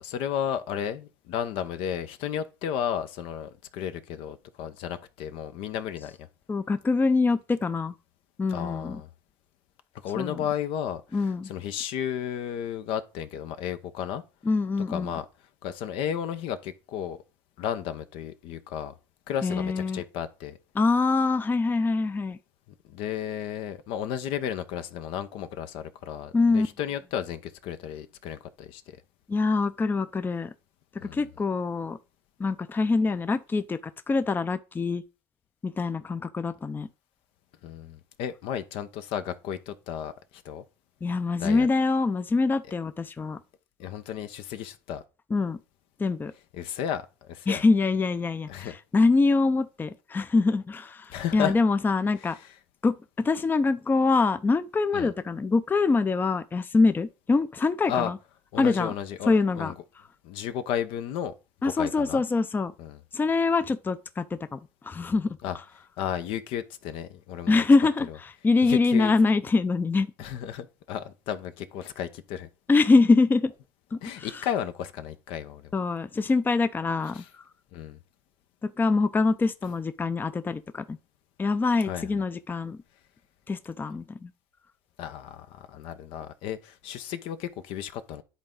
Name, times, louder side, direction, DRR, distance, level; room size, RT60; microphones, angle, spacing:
voice 1, 0.0-6.3 8.5-9.1 10.0-14.2 14.9-15.2 15.6-17.2 17.6-18.9 19.3-20.6 22.8-28.8 31.0-31.2 37.6-40.6 41.4-41.7 43.8-45.0 46.5-47.6 48.5-48.7 51.1-51.5 52.2-52.5 54.9-55.1 57.9-58.1 58.5-59.7 60.2-61.3 61.6-62.2 62.8-63.0 65.4-65.6 66.0-67.6 68.6-69.1 70.2-72.5 74.0-75.7 77.1-77.3 77.7-78.0 81.9-82.1 85.0-88.2, left 9 dB, 70° left, 0.7 m, -33 dB
voice 2, 6.5-7.9 8.4-9.0 10.2-10.4 11.1-11.5 14.5-15.2 19.4-20.0 20.8-22.4 26.3-26.7 29.3-30.5 31.0-32.0 32.4-33.8 34.1-35.0 35.6-36.9 41.0-43.4 45.3-45.6 46.0-46.3 47.5-52.4 52.8-58.2 58.6-58.9 59.3-59.7 61.6-62.7 63.1-65.4 67.5-70.1 72.7-73.5 73.9-74.4 75.7-77.2 78.6-81.0 81.4-82.8 83.5-84.3, left 3 dB, 20° left, 0.5 m, -24 dB
10.5 x 3.9 x 3.7 m
hypercardioid pair, 80°, 10 cm